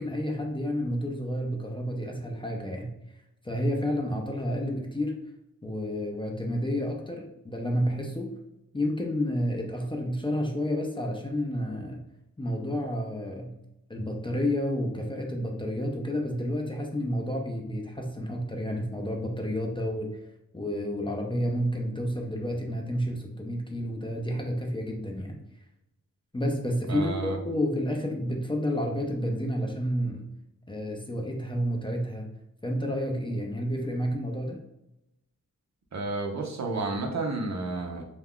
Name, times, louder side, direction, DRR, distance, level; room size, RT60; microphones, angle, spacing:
voice 1, 0.0-2.9 3.4-5.2 5.6-8.3 8.7-12.1 12.4-13.6 13.9-20.2 20.5-25.4 26.3-30.3 30.7-32.3 32.6-34.6, equal, 15° left, 0 dB, 0.4 m, -30 dB
voice 2, 26.9-27.4 35.9-38.0, right 3 dB, 60° right, 2 dB, 0.6 m, -31 dB
2.3 x 2.2 x 3.5 m, 0.87 s
wide cardioid pair, 75°, 31 cm